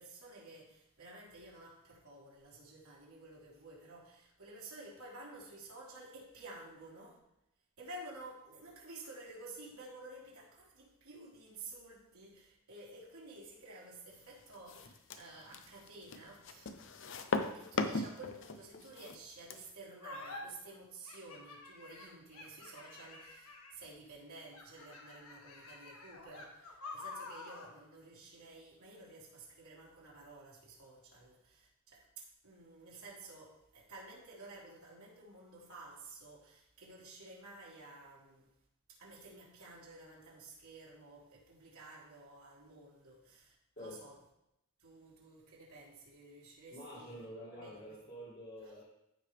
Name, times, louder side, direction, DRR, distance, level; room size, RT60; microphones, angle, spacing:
voice 1, 0.0-7.2 7.8-16.7 17.5-38.5 38.9-44.2 44.8-47.2 47.5-47.8 48.6-48.7, right 2 dB, 90° right, 3.3 m, -52 dB
sound 1, 14.5-19.7, left 3 dB, 55° left, 0.7 m, -38 dB
sound 2, 20.0-20.4 21.1-23.9 24.5-27.7, left 3 dB, 80° left, 1.6 m, -49 dB
voice 2, 46.7-48.8, equal, 40° left, 2.3 m, -48 dB
15.0 x 5.0 x 3.4 m
head